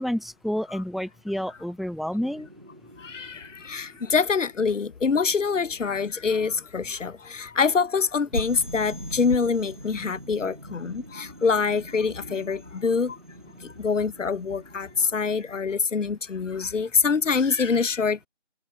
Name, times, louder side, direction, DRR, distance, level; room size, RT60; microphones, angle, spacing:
voice 1, 0.0-2.5, equal, ahead, 0.7 m, -29 dB
sound 1, 2.2-5.2 8.3-15.6, equal, 40° right, 1.9 m, -41 dB
voice 2, 3.0-13.2 13.6-18.3, left 5 dB, 85° left, 0.6 m, -25 dB
figure-of-eight pair, 180°, 37 cm